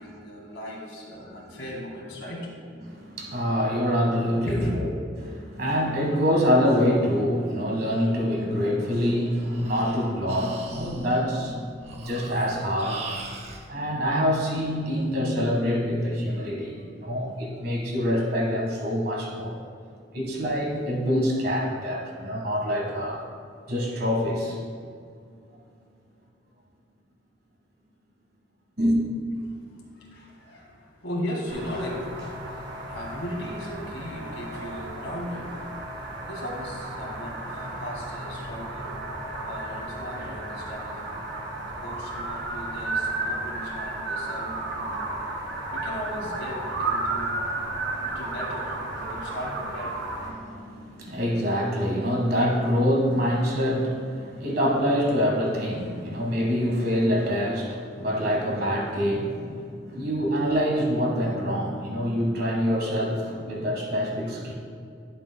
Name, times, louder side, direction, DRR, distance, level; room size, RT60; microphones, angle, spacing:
voice 1, 0.0-2.5 4.4-4.8 29.4-35.7 36.0-39.0 39.4-41.1 41.8-45.0 45.7-47.3 48.0-50.0, left 1 dB, 75° left, -2 dB, 1.9 m, -37 dB
voice 2, 2.8-4.9 5.2-13.0 13.7-19.6 20.1-23.3 23.7-24.6 28.8-29.0 50.3-64.5, equal, 50° right, -1 dB, 1.5 m, -25 dB
Breathing, 9.1-13.6, right 3 dB, 35° right, 0.6 m, -40 dB
sound 1, 31.5-50.3, right 2 dB, 70° right, 1.7 m, -33 dB
11.0 x 7.4 x 2.2 m, 2.3 s
head